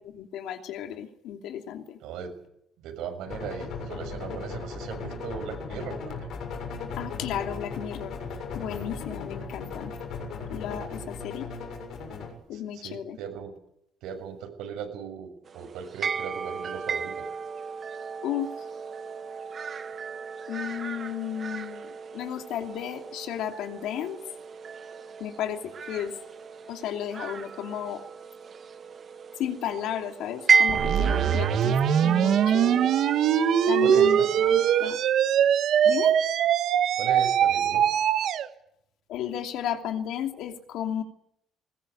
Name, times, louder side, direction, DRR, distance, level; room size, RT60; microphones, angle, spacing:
voice 1, 0.0-2.0 7.0-8.1 8.5-9.9 10.5-11.5 12.5-13.2 18.2-18.5 20.5-24.2 25.2-26.1 26.7-28.0 29.3-32.9 33.7-35.0 35.8-36.1 39.1-41.0, left 10 dB, 75° left, 5 dB, 2.9 m, -34 dB
voice 2, 2.0-2.3 2.8-6.3 11.0-11.1 12.5-13.5 14.0-17.3 33.8-34.3 37.0-37.8, right 7 dB, 90° right, 4 dB, 6.7 m, -38 dB
sound 1, 3.2-12.3, left 4 dB, 55° left, 7.2 m, -37 dB
sound 2, 15.5-34.9, right 5 dB, 30° right, 1.4 m, -32 dB
sound 3, 30.7-38.5, right 9 dB, 55° right, 1.4 m, -22 dB
21.5 x 20.5 x 8.3 m, 0.74 s
cardioid pair, 175°, 0 cm